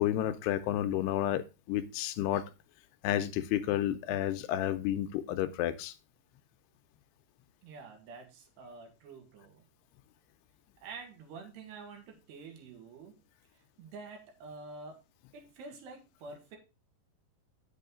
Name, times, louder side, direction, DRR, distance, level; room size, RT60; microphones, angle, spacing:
voice 1, 0.0-2.5 3.0-5.9, left 12 dB, 85° left, 2.7 m, -31 dB
voice 2, 7.6-9.7 10.8-13.2 13.5-15.0 15.3-16.6, right 4 dB, 75° right, 3.8 m, -48 dB
8.3 x 7.7 x 3.6 m
omnidirectional pair, 4.8 m